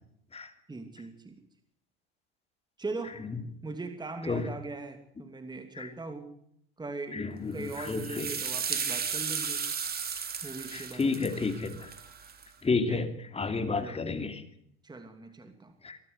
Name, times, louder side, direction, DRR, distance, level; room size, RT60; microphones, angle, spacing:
voice 1, 0.7-1.4 2.8-3.2 3.6-6.3 6.8-7.2 7.5-9.6 10.4-11.3 12.7-13.0 13.7-14.0 14.8-15.7, right 3 dB, 15° right, 7 dB, 2.8 m, -40 dB
voice 2, 7.1-8.3 9.8-9.9 10.7-11.9 12.6-14.4 15.8-16.0, left 4 dB, 20° left, 9 dB, 2.9 m, -31 dB
sound 1, 7.6-12.4, right 6 dB, 30° right, 3.5 m, -35 dB
23.5 x 13.5 x 8.1 m, 0.71 s
hypercardioid pair, 95°, 32 cm